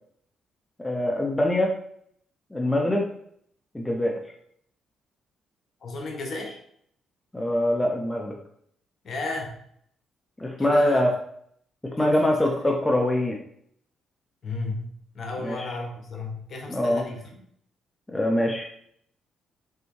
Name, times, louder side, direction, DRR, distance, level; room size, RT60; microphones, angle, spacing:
voice 1, 0.8-1.7 2.5-3.1 3.7-4.1 7.3-8.3 10.4-11.1 11.8-13.4 15.4-15.7 16.7-17.0 18.1-18.7, left 1 dB, 10° left, 0 dB, 0.4 m, -23 dB
voice 2, 5.8-6.6 9.0-9.5 10.6-11.0 12.0-12.6 14.4-17.3, left 2 dB, 50° left, 1 dB, 0.9 m, -34 dB
3.3 x 2.6 x 3.1 m, 0.67 s
cardioid pair, 90°, 0 cm